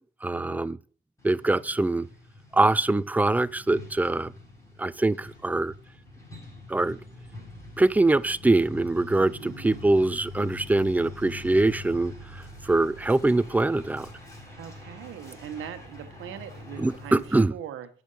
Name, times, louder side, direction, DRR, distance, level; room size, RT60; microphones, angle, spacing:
voice 1, 0.2-0.8 1.2-2.1 2.5-4.3 4.8-5.7 6.7-7.0 7.8-14.1 16.8-17.5, right 2 dB, 10° right, 0.3 m, -23 dB
Truck, 1.2-17.4, left 2 dB, 15° left, 5.6 m, -44 dB
voice 2, 9.2-9.9 14.5-17.9, right 9 dB, 85° right, 1.1 m, -41 dB
8.3 x 6.3 x 5.4 m
cardioid pair, 90°, 20 cm